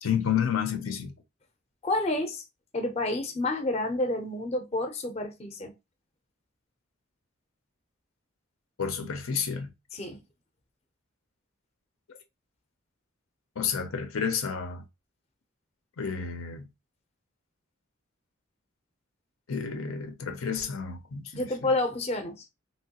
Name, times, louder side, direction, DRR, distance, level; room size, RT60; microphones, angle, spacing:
voice 1, 0.0-1.1 8.8-9.7 12.1-12.2 13.6-14.8 16.0-16.7 19.5-21.5, left 7 dB, 85° left, 0.6 m, -30 dB
voice 2, 1.8-2.4 2.7-5.7 9.9-10.2 21.3-22.5, left 2 dB, 30° left, 0.5 m, -29 dB
3.0 x 2.9 x 2.8 m
head